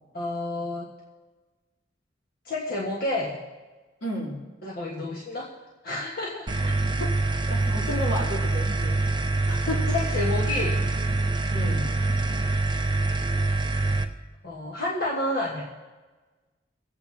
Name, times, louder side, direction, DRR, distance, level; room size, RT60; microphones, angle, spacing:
voice 1, 0.1-0.9 2.4-3.4 4.6-5.5 5.8-6.5 9.6-10.8 14.4-15.7, left 2 dB, 55° left, -4 dB, 1.6 m, -30 dB
voice 2, 4.0-4.5 6.6-6.7 7.0-9.0 9.5-9.9 11.5-12.0, left 1 dB, 75° left, -4 dB, 3.2 m, -33 dB
sound 1, 6.5-14.0, right 2 dB, 25° right, 0.7 m, -25 dB
24.5 x 8.5 x 2.9 m, 1.3 s
head